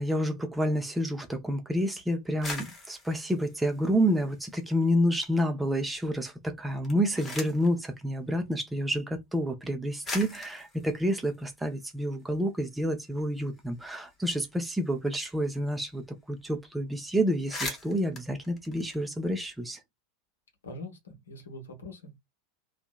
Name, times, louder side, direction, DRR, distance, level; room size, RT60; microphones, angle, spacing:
voice 1, 0.0-16.0 16.3-19.8, equal, 5° right, 0.6 m, -29 dB
sound 1, 2.2-4.8 5.2-5.9 6.7-7.8 8.8-8.9 9.6-9.7 10.0-12.4 12.7-12.8 13.1-15.7 15.9-16.1 16.4-16.6 17.0-17.1 17.3-19.5, left 3 dB, 25° left, 0.9 m, -42 dB
voice 2, 20.6-22.2, left 2 dB, 75° left, 0.9 m, -43 dB
2.7 x 2.4 x 2.2 m
figure-of-eight pair, 85°, 0 cm